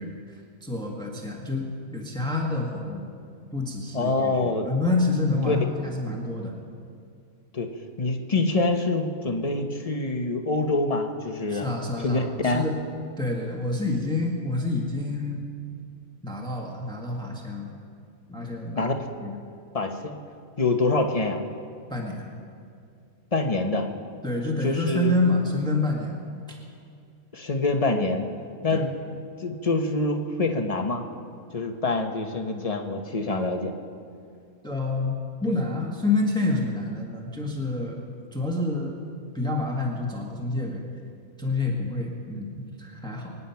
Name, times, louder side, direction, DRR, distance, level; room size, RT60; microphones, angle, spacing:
voice 1, 0.0-3.1 3.5-6.6 11.5-12.8 13.2-15.4 16.2-17.7 18.3-18.9 19.2-19.4 21.9-22.3 24.2-26.2 26.5-26.6 28.7-28.8 34.6-38.0 38.3-39.0 39.3-40.8 41.4-43.3, left 2 dB, 5° left, -1 dB, 1.6 m, -28 dB
voice 2, 3.9-4.7 5.5-5.6 7.5-7.7 8.0-11.7 12.0-12.6 18.8-18.9 19.7-20.1 20.6-21.4 23.3-23.9 24.6-25.2 27.3-28.3 28.6-29.0 29.4-31.0 31.5-33.7, left 3 dB, 25° left, 4 dB, 1.1 m, -25 dB
24.5 x 9.7 x 5.8 m, 2.3 s
omnidirectional pair, 1.5 m